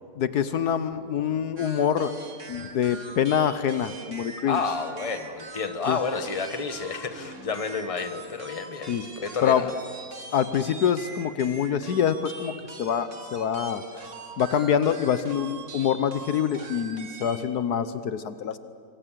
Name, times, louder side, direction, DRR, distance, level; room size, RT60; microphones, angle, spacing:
voice 1, 0.2-2.1 2.5-4.6 5.9-6.0 8.9-9.0 9.4-9.6 10.3-13.8 14.4-18.6, left 8 dB, 70° left, 11 dB, 1.4 m, -25 dB
sound 1, 1.6-17.4, right 3 dB, 50° right, 2.3 m, -42 dB
voice 2, 4.4-9.7, left 5 dB, 20° left, 7 dB, 1.3 m, -30 dB
25.5 x 25.0 x 7.5 m, 2.3 s
omnidirectional pair, 1.7 m